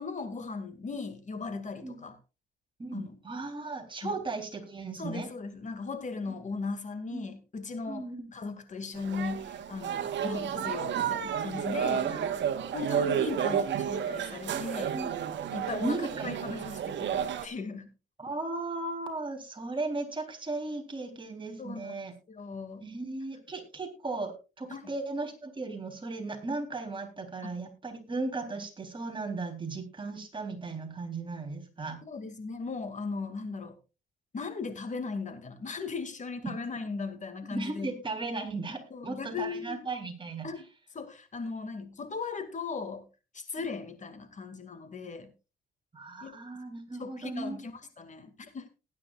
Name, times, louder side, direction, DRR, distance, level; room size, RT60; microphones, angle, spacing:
voice 1, 0.0-2.2 2.9-3.2 4.0-4.2 5.0-12.1 12.7-15.0 15.5-17.9 21.6-21.9 22.3-22.9 24.7-24.9 27.4-27.5 32.0-33.7 34.3-37.9 38.9-39.8 40.4-40.7 40.9-43.1 43.3-45.3 46.2-46.4 47.0-47.7 48.0-48.7, left 4 dB, 40° left, 2.3 m, -37 dB
voice 2, 2.8-5.3 6.3-6.4 7.1-7.3 7.9-8.2 11.9-13.2 14.5-15.1 15.8-16.3 18.2-22.1 22.8-32.0 37.5-40.5 45.9-47.6, right 3 dB, 25° right, 3.8 m, -36 dB
sound 1, 8.9-17.5, right 8 dB, 65° right, 1.4 m, -31 dB
19.5 x 9.7 x 2.5 m
cardioid pair, 90°, 20 cm